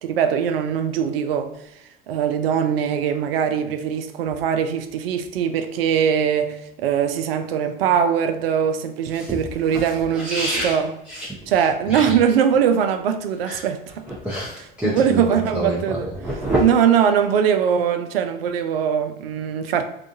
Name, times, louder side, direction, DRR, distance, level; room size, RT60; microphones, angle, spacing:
voice 1, 0.0-1.5 2.1-10.9 11.5-14.0 14.8-16.0 16.6-19.8, right 8 dB, 75° right, 0.5 m, -21 dB
voice 2, 9.1-10.8 11.1-11.5 11.9-12.1 13.4-13.6 14.1-16.6, right 1 dB, 5° right, 0.7 m, -27 dB
3.6 x 2.3 x 2.6 m
hypercardioid pair, 65°, 29 cm